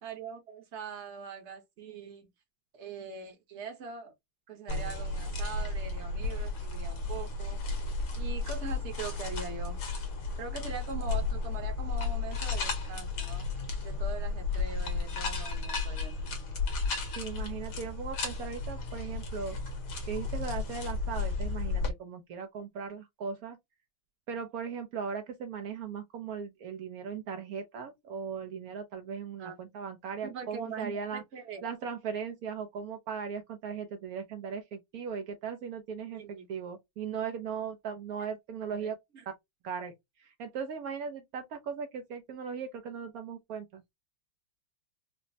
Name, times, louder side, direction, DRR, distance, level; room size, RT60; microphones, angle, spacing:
voice 1, 0.0-2.3 2.7-4.1 4.5-7.6 8.2-9.8 10.4-13.4 13.8-16.3 29.4-29.6 30.2-31.6 36.1-36.5 38.7-39.3, right 5 dB, 45° right, 1.0 m, -42 dB
sound 1, 4.7-21.9, left 3 dB, 70° left, 2.0 m, -33 dB
voice 2, 17.2-19.6 20.1-23.6 24.3-31.2 31.6-38.9 39.6-39.9 40.2-43.8, right 6 dB, 75° right, 0.8 m, -38 dB
5.0 x 2.0 x 2.6 m
omnidirectional pair, 2.3 m